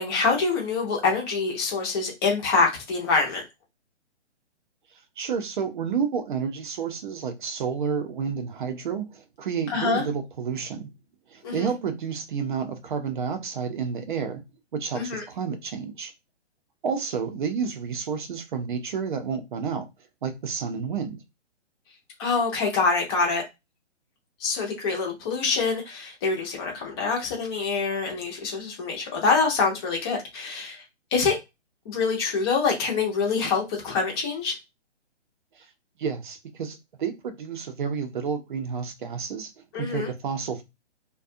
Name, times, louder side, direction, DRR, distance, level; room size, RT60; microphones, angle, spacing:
voice 1, 0.0-3.4 9.7-10.0 11.4-11.7 14.9-15.2 22.2-23.4 24.4-30.8 31.1-31.4 31.9-34.6 39.7-40.1, left 4 dB, 20° left, 0.6 m, -25 dB
voice 2, 5.2-10.9 11.3-14.4 14.7-16.1 16.8-19.9 20.2-21.2 35.6-35.7 36.0-39.5 39.8-40.6, right 6 dB, 45° right, 0.6 m, -30 dB
2.4 x 2.2 x 2.6 m
hypercardioid pair, 145°, 35 cm